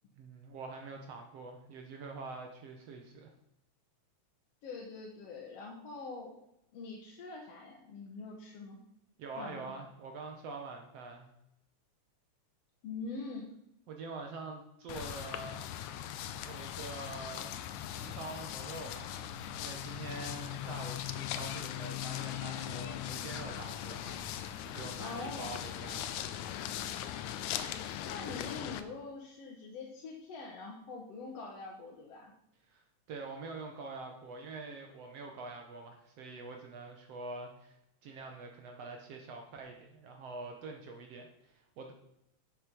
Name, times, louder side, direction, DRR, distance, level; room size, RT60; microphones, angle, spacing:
voice 1, 0.2-3.3 9.2-11.3 13.9-15.7 16.4-17.6 18.0-19.1 19.6-26.1 32.7-32.8 33.1-37.8 38.0-41.9, right 3 dB, 65° right, 3 dB, 2.1 m, -45 dB
voice 2, 4.6-6.3 6.7-8.8 9.4-9.7 12.8-13.5 25.0-25.5 27.5-27.7 28.0-32.3, left 3 dB, 60° left, -1 dB, 2.3 m, -44 dB
sound 1, 14.9-28.8, left 11 dB, 85° left, 2.0 m, -39 dB
10.5 x 7.7 x 5.3 m, 0.81 s
omnidirectional pair, 3.3 m